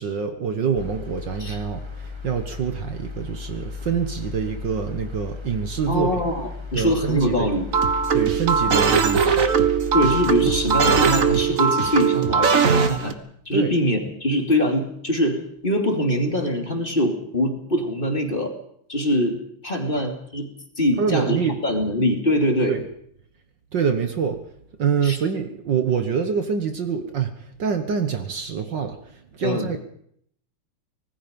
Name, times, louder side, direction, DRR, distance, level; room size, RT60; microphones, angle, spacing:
voice 1, 0.0-6.2 6.7-7.5 8.1-9.4 13.5-13.7 21.0-21.6 22.7-22.8 23.7-24.4 24.8-27.3 27.6-29.8, right 6 dB, 55° right, 7 dB, 1.8 m, -25 dB
sound 1, 0.8-11.4, left 4 dB, 15° right, 1.7 m, -35 dB
voice 2, 5.9-7.7 9.9-13.1 13.5-18.5 18.9-20.5 20.8-22.7 25.0-25.2 29.4-29.8, equal, 25° left, 3 dB, 2.8 m, -23 dB
sound 2, 7.7-13.1, right 6 dB, 40° right, 1.5 m, -20 dB
25.5 x 19.5 x 5.3 m, 0.66 s
omnidirectional pair, 2.4 m